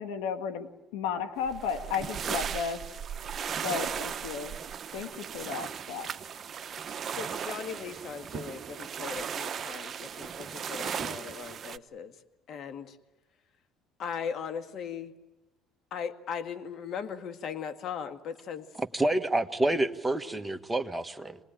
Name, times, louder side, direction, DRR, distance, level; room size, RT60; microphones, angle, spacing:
voice 1, 0.0-2.8 3.6-4.6 4.9-6.1, left 6 dB, 90° left, 7 dB, 1.7 m, -34 dB
sound 1, 1.5-11.8, right 7 dB, 40° right, 0.9 m, -37 dB
voice 2, 7.1-12.1 12.5-13.0 14.0-15.2 15.9-18.7, left 7 dB, 55° left, 8 dB, 1.9 m, -38 dB
voice 3, 18.8-21.4, right 1 dB, 10° right, 6 dB, 1.5 m, -28 dB
26.5 x 20.0 x 9.0 m, 1.0 s
supercardioid pair, 95°, 0 cm